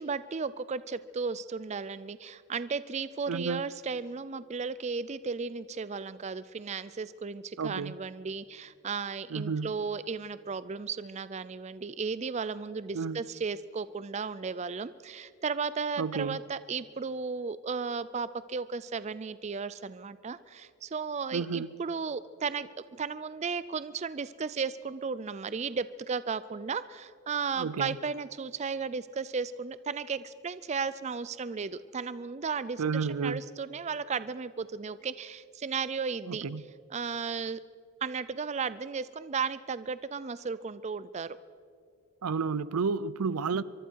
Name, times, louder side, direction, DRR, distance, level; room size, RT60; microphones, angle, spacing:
voice 1, 0.0-36.5 36.9-37.6 38.0-41.3, right 5 dB, 30° right, 0.4 m, -35 dB
voice 2, 3.3-3.6 7.6-8.0 9.3-9.7 12.9-13.2 16.0-16.4 21.3-21.7 27.6-28.0 32.8-33.4 36.3-36.6 42.2-43.6, right 5 dB, 85° right, 0.5 m, -31 dB
24.0 x 23.5 x 4.6 m
head